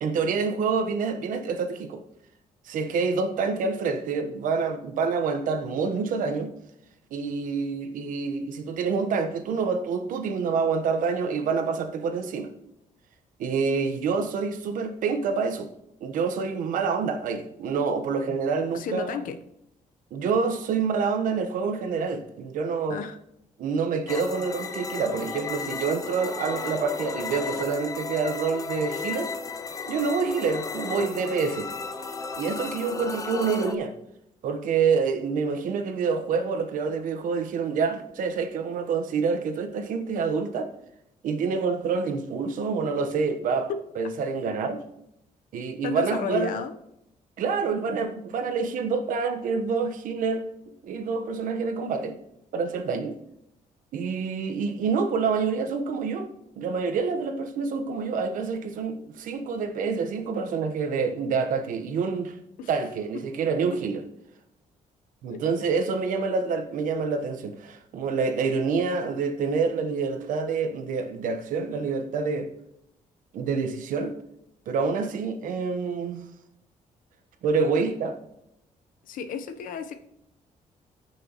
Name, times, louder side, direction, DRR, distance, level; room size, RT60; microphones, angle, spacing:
voice 1, 0.0-2.0 2.6-6.5 7.1-12.5 13.4-15.7 16.0-19.2 20.1-23.0 23.6-29.3 29.8-31.7 32.3-33.9 34.4-40.7 41.2-43.7 44.0-44.8 45.5-46.6 47.4-50.5 50.8-52.2 52.5-53.2 53.9-56.3 56.6-62.3 62.7-64.0 65.2-72.5 73.3-74.1 74.7-76.2 77.4-78.2, right 5 dB, 75° right, 1.2 m, -27 dB
voice 2, 18.7-19.4 22.9-23.2 43.7-43.8 45.8-46.7 62.6-62.7 65.3-65.4 79.0-80.0, left 6 dB, 80° left, 1.0 m, -32 dB
sound 1, 24.1-33.8, left 4 dB, 25° left, 0.6 m, -34 dB
15.0 x 6.2 x 3.1 m
cardioid pair, 150°, 14 cm